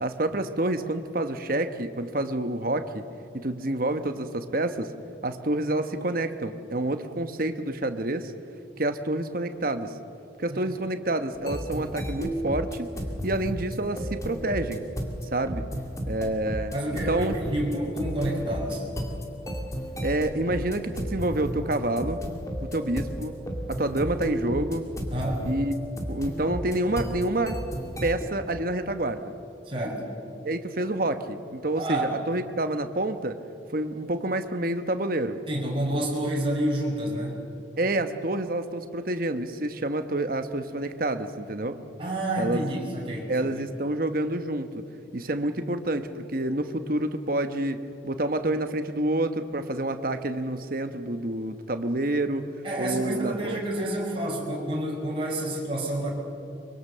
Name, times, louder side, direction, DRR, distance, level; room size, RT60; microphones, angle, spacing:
voice 1, 0.0-3.0 3.3-4.9 5.2-8.3 8.8-9.9 10.4-12.9 13.2-14.8 15.3-15.7 16.1-17.3 20.0-22.2 22.6-23.4 23.7-24.9 25.4-25.8 26.1-27.6 28.0-29.3 30.4-33.4 33.7-35.4 37.8-41.8 42.4-42.7 43.3-44.9 45.1-52.4 52.8-53.6, right 1 dB, 50° right, 8 dB, 1.2 m, -28 dB
sound 1, 11.3-28.2, equal, 15° left, 2.3 m, -33 dB
voice 2, 16.7-18.9 25.1-25.5 29.6-30.1 31.8-32.1 35.5-37.4 42.0-43.6 52.6-56.1, right 1 dB, 30° right, -3 dB, 5.5 m, -29 dB
24.5 x 23.5 x 6.8 m, 2.7 s
head